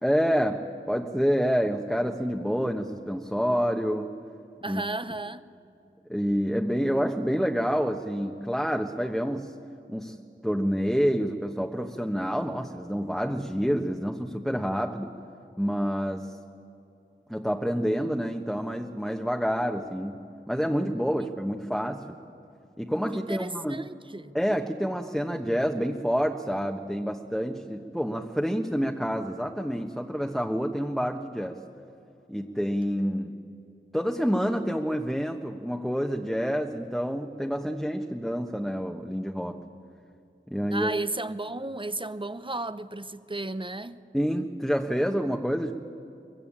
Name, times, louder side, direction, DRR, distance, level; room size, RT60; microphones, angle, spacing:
voice 1, 0.0-4.1 4.7-4.8 6.1-9.5 9.9-10.2 10.4-15.1 15.6-16.4 17.3-22.2 22.8-23.8 24.3-31.6 32.3-33.3 33.9-39.6 40.5-40.9 44.1-45.7, equal, ahead, 1.3 m, -28 dB
voice 2, 4.6-5.5 21.2-21.4 23.1-24.4 40.7-44.0, right 2 dB, 25° right, 0.9 m, -34 dB
23.5 x 21.5 x 8.8 m
cardioid pair, 40°, 20 cm